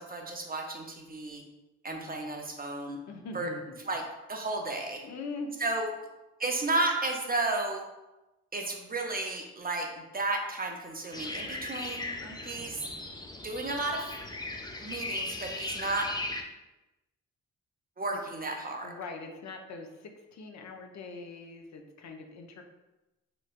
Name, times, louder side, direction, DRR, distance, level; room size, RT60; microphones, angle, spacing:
voice 1, 0.0-1.4 1.8-3.0 3.3-3.5 3.9-4.0 4.3-5.0 5.6-5.9 6.4-7.8 8.5-12.0 12.4-12.8 13.4-14.1 14.8-16.1 18.0-18.9, right 2 dB, 30° right, 2 dB, 0.6 m, -33 dB
voice 2, 1.9-2.5 3.1-3.9 5.0-5.5 12.2-13.0 18.1-18.2 18.8-22.6, left 3 dB, 65° left, 3 dB, 0.6 m, -43 dB
sound 1, 11.1-16.4, left 2 dB, 15° left, 0.4 m, -38 dB
3.2 x 3.0 x 2.4 m, 1.0 s
supercardioid pair, 55°, 31 cm